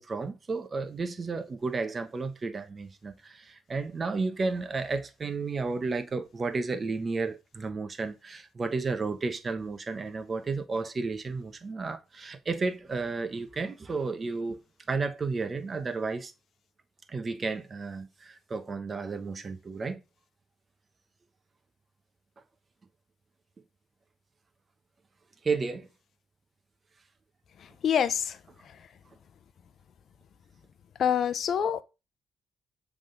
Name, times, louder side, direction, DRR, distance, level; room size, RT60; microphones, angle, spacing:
voice 1, 0.0-14.6 14.9-16.3 17.1-20.0 25.4-25.9, right 4 dB, 40° right, 1.1 m, -32 dB
voice 2, 27.8-28.4 31.0-31.8, left 8 dB, 60° left, 0.7 m, -25 dB
7.6 x 3.6 x 3.9 m
supercardioid pair, 55°, 0 cm